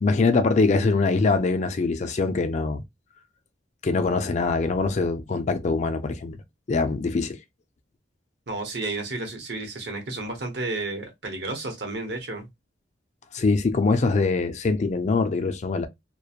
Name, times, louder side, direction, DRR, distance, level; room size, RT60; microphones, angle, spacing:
voice 1, 0.0-2.8 3.8-6.4 6.7-7.4 13.3-15.9, left 3 dB, 40° left, 0.4 m, -23 dB
voice 2, 8.5-12.5, right 2 dB, 65° right, 0.9 m, -32 dB
2.9 x 2.2 x 2.3 m
head